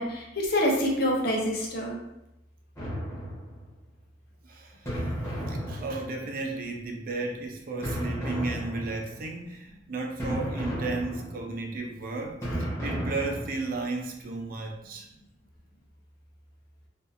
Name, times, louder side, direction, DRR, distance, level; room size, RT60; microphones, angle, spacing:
voice 1, 0.0-2.0, equal, 60° left, -1 dB, 0.6 m, -26 dB
sound 1, 2.8-3.8 4.9-6.4 7.8-9.2 10.2-11.6 12.4-13.8, equal, 15° left, 0.8 m, -33 dB
voice 2, 4.4-5.1 5.5-12.4 12.8-15.1, right 3 dB, 50° right, 2 dB, 0.4 m, -34 dB
2.6 x 2.3 x 2.4 m, 0.87 s
head